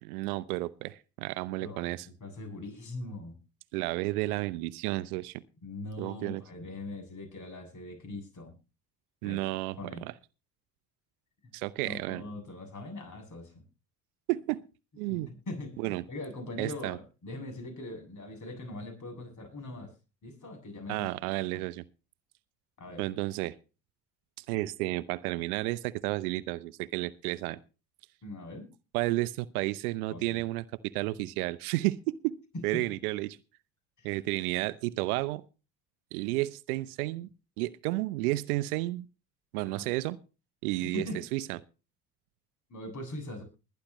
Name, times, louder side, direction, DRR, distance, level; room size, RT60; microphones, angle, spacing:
voice 1, 0.0-2.1 3.7-5.4 6.0-6.4 9.2-9.8 10.0-10.1 11.5-12.2 14.3-14.6 15.0-15.3 15.8-16.0 16.6-17.0 20.9-21.8 23.0-23.5 24.4-27.6 28.9-32.4 32.6-33.4 34.0-35.4 36.1-37.3 37.6-39.1 39.5-40.2 40.6-41.0 41.3-41.6, right 19 dB, 70° right, 0.8 m, -32 dB
voice 2, 1.6-3.4 5.6-8.6 9.2-9.4 9.8-10.1 11.8-13.6 15.1-19.9 20.2-21.1 21.5-21.6 22.8-23.1 28.2-28.7 30.1-30.4 32.5-32.9 34.0-34.1 39.6-39.9 40.8-41.2 42.7-43.4, left 2 dB, 40° left, 8.0 m, -41 dB
21.0 x 10.5 x 3.1 m
figure-of-eight pair, 60°, 46 cm